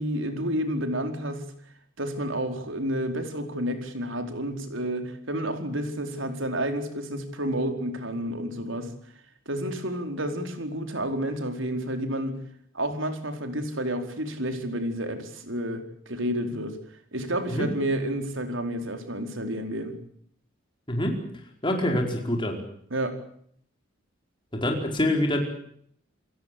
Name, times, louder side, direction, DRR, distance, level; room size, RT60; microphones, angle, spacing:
voice 1, 0.0-1.5 2.0-8.9 9.5-12.4 12.7-16.8 17.1-20.0 22.9-23.2, right 1 dB, 70° right, 6 dB, 4.6 m, -30 dB
voice 2, 20.9-21.2 21.6-22.6 24.5-25.4, left 1 dB, 25° left, 2 dB, 4.9 m, -25 dB
28.5 x 17.0 x 8.5 m, 0.65 s
head